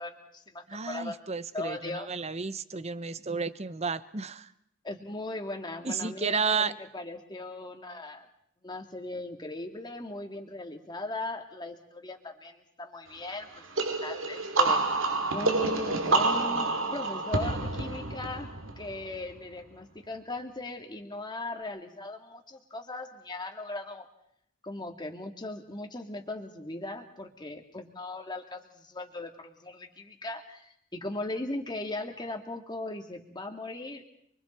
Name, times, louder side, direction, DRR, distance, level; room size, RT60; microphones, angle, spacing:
voice 1, 0.0-1.2 1.5-2.1 4.8-8.3 8.6-14.8 15.3-18.5 18.8-24.1 24.6-34.0, left 2 dB, 20° left, 3 dB, 2.2 m, -38 dB
voice 2, 0.7-4.5 5.8-6.7, right 5 dB, 30° right, 14 dB, 0.9 m, -32 dB
sound 1, 13.8-19.3, right 3 dB, 85° right, 2.5 m, -28 dB
30.0 x 23.5 x 4.4 m, 0.71 s
head